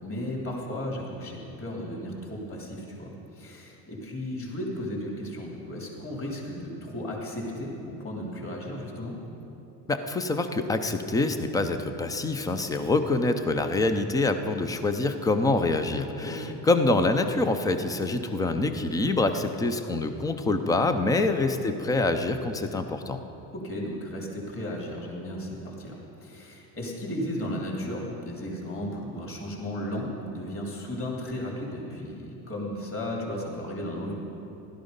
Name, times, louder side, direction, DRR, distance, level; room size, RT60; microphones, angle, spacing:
voice 1, 0.0-9.2 16.2-16.6 21.1-21.3 23.5-34.1, left 1 dB, 25° left, -2 dB, 3.2 m, -35 dB
voice 2, 9.9-23.2, left 2 dB, 10° left, 8 dB, 0.3 m, -26 dB
16.0 x 12.5 x 5.2 m, 2.9 s
supercardioid pair, 130°, 48 cm